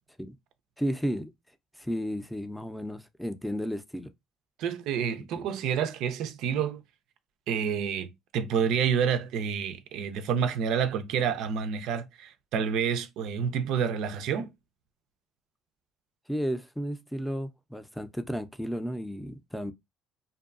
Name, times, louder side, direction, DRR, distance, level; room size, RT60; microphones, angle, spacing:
voice 1, 0.8-1.3 1.8-4.1 5.4-5.5 16.3-19.7, equal, ahead, 0.5 m, -33 dB
voice 2, 4.6-6.8 7.5-14.5, right 7 dB, 75° right, 0.5 m, -29 dB
2.6 x 2.2 x 2.4 m
supercardioid pair, 75°, 0 cm